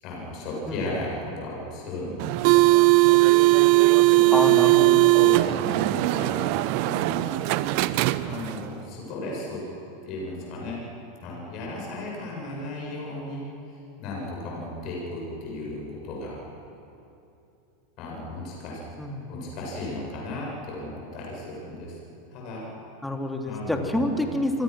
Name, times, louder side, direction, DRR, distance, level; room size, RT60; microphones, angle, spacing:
voice 1, 0.0-2.9 3.9-4.5 5.0-7.3 8.2-9.6 10.1-10.8 11.2-13.5 14.0-16.4 18.0-18.8 19.3-22.0 22.3-22.7 23.4-24.3, left 2 dB, 50° left, -3 dB, 7.5 m, -35 dB
sound 1, 2.2-8.7, right 21 dB, 55° right, 0.8 m, -19 dB
voice 2, 4.3-5.1 19.0-19.3 23.0-24.6, left 1 dB, 5° left, 3 dB, 3.1 m, -28 dB
27.5 x 24.0 x 6.3 m, 2.8 s
figure-of-eight pair, 85°, 0 cm